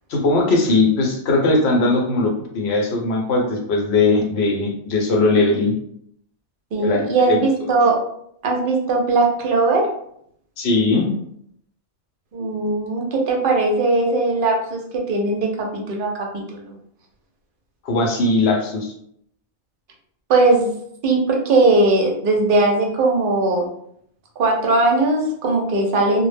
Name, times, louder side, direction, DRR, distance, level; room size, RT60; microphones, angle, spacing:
voice 1, 0.1-5.7 6.8-7.4 10.6-11.1 17.8-18.9, left 2 dB, 65° left, 1 dB, 0.8 m, -19 dB
voice 2, 6.7-8.0 8.4-9.9 12.3-16.8 20.3-20.7 21.0-23.7 24.4-26.3, right 2 dB, 60° right, 1 dB, 0.6 m, -19 dB
2.1 x 2.0 x 3.2 m, 0.70 s
omnidirectional pair, 1.2 m